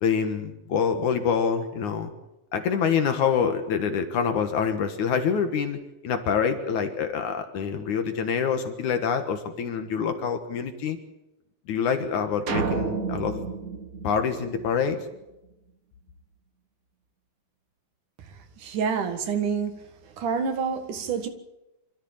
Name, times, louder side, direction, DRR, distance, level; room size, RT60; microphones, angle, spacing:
voice 1, 0.0-2.1 2.5-5.8 6.0-11.0 11.7-13.4 14.0-15.0, left 6 dB, 70° left, 2.8 m, -26 dB
sound 1, 12.5-15.0, right 4 dB, 55° right, 0.9 m, -30 dB
voice 2, 18.6-19.8 20.2-21.3, right 6 dB, 75° right, 3.2 m, -27 dB
25.5 x 14.5 x 8.8 m
omnidirectional pair, 3.7 m